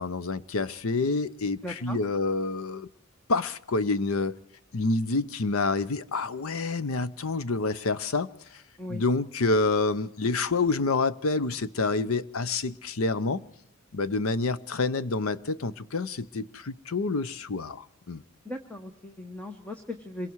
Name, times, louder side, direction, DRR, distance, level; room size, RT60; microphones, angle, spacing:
voice 1, 0.0-2.9 3.3-4.4 4.7-8.6 8.9-13.4 13.9-18.2, left 3 dB, 75° left, 0.8 m, -28 dB
voice 2, 1.6-2.0 8.8-9.0 18.4-20.3, left 1 dB, 5° left, 1.1 m, -38 dB
26.5 x 22.5 x 4.7 m
head